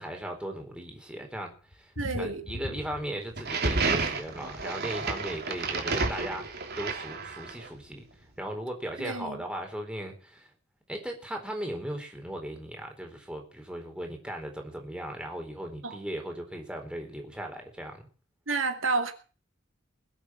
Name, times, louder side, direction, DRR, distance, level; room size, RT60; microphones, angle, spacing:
voice 1, 0.0-6.5 6.8-8.0 8.4-10.5 10.9-18.0, right 1 dB, 5° right, 3 dB, 4.2 m, -37 dB
sound 1, 1.7-3.7 4.0-4.7 5.7-5.8 6.1-6.2 6.5-6.6, left 1 dB, 65° left, 3.7 m, -40 dB
voice 2, 2.0-2.4 9.0-9.4 15.8-16.0 18.5-19.1, right 3 dB, 85° right, 6 dB, 2.4 m, -30 dB
sound 2, 3.4-7.7, right 3 dB, 55° right, 3.1 m, -31 dB
21.5 x 8.2 x 7.6 m, 0.38 s
head